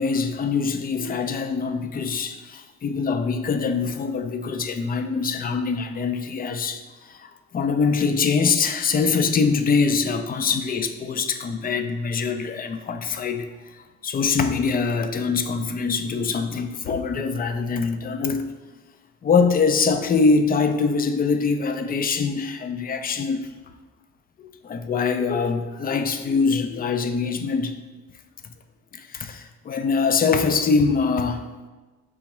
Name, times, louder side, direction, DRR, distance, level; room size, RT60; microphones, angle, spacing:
voice 1, 0.0-18.5 19.2-23.5 24.4-27.8 28.9-31.4, left 5 dB, 30° left, 8 dB, 0.4 m, -23 dB
4.8 x 3.4 x 3.0 m, 1.2 s
cardioid pair, 90°, 30 cm